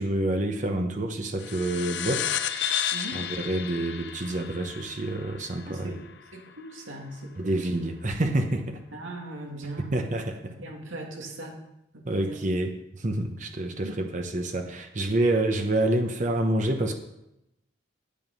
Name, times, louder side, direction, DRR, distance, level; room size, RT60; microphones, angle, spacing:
voice 1, 0.0-2.8 3.1-6.0 7.4-8.8 9.9-10.6 12.0-16.9, right 1 dB, 40° right, 4 dB, 0.9 m, -28 dB
sound 1, 1.4-6.3, left 9 dB, 60° left, 0.6 m, -32 dB
voice 2, 2.9-3.2 5.7-6.0 6.3-7.7 8.9-10.0 10.5-11.6 11.9-12.4 13.8-14.0, right 2 dB, 90° right, 0 dB, 2.6 m, -39 dB
9.2 x 8.6 x 5.4 m, 0.85 s
head